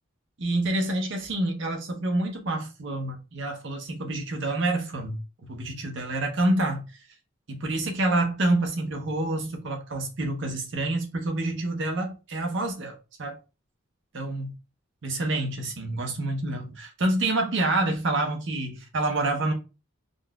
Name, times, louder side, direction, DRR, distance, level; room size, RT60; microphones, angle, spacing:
voice 1, 0.4-5.2 5.5-6.8 7.5-13.4 14.1-14.5 15.0-19.5, right 2 dB, 60° right, 0.7 m, -27 dB
3.7 x 2.4 x 2.3 m
head